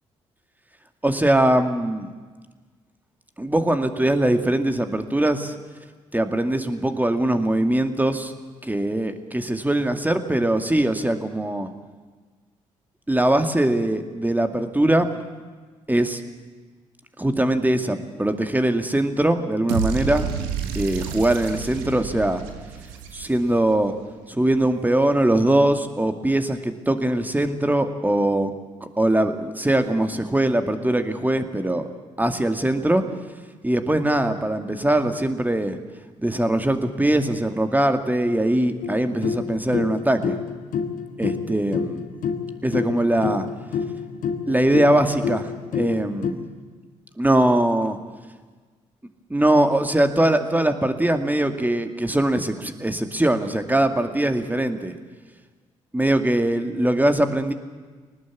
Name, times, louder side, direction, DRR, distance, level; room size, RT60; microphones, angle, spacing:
voice 1, 1.0-2.1 3.4-5.6 6.1-8.3 8.6-11.7 13.1-15.1 15.9-16.2 17.2-20.3 20.7-22.4 23.1-23.9 24.3-28.5 28.8-31.9 32.2-33.0 33.6-35.8 36.2-40.4 41.2-42.1 42.6-43.5 44.5-46.5 47.2-48.0 49.3-54.9 55.9-57.5, right 1 dB, 10° right, 7 dB, 2.3 m, -21 dB
sound 1, 19.7-23.8, right 6 dB, 75° right, 2.0 m, -30 dB
sound 2, 38.8-46.3, left 6 dB, 55° left, 2.0 m, -29 dB
21.5 x 19.0 x 8.4 m, 1.4 s
figure-of-eight pair, 45°, 16 cm